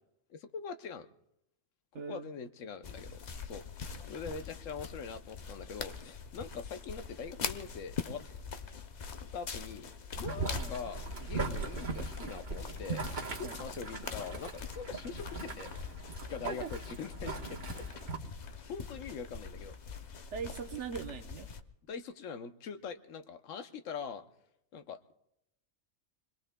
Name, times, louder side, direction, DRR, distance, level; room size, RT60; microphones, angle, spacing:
voice 1, 0.3-1.1 1.9-8.2 9.3-9.9 10.2-15.7 16.3-17.9 18.7-19.7 21.9-24.2 24.7-25.1, left 6 dB, 70° left, 9 dB, 1.1 m, -43 dB
voice 2, 1.9-2.3 10.6-10.7 13.4-13.7 16.5-16.7 20.3-21.5, right 6 dB, 60° right, 6 dB, 1.1 m, -40 dB
sound 1, 2.8-21.6, left 6 dB, 45° left, 0.6 m, -43 dB
Boiling, 10.2-18.2, right 3 dB, 35° right, 1.3 m, -39 dB
28.0 x 21.5 x 2.2 m, 0.81 s
omnidirectional pair, 1.4 m